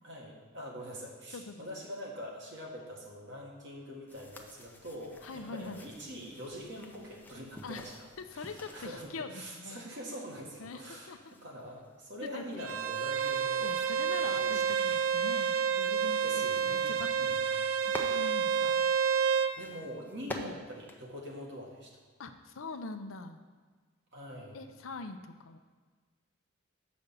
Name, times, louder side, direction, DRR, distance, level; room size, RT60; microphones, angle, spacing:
voice 1, 0.0-8.1 8.3-14.7 16.2-16.9 17.2-17.6 18.6-18.7 19.6-21.9 24.1-24.6, equal, 60° right, -1 dB, 1.7 m, -44 dB
voice 2, 1.3-1.6 5.2-5.8 7.6-7.9 8.3-9.8 10.6-11.4 12.2-12.7 13.6-17.1 17.4-18.8 20.3-20.5 22.2-23.4 24.5-25.6, left 3 dB, 80° left, 8 dB, 0.6 m, -43 dB
sound 1, 4.1-9.1 10.1-21.9, left 1 dB, 10° left, 0.5 m, -50 dB
Bowed string instrument, 12.6-19.5, right 7 dB, 90° right, 0.5 m, -29 dB
6.9 x 5.1 x 6.7 m, 1.5 s
head